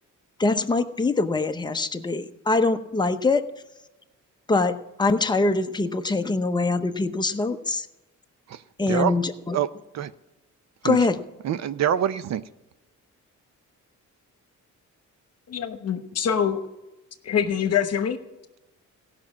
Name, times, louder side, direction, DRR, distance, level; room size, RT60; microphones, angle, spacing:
voice 1, 0.4-3.4 4.5-7.9 8.8-9.6 10.8-11.2, left 3 dB, 15° left, 7 dB, 0.7 m, -23 dB
voice 2, 11.4-12.4, right 10 dB, 60° right, 14 dB, 0.6 m, -25 dB
voice 3, 15.5-16.6 17.2-18.2, left 8 dB, 50° left, 9 dB, 1.1 m, -24 dB
16.5 x 5.9 x 7.3 m, 0.99 s
cardioid pair, 135°, 31 cm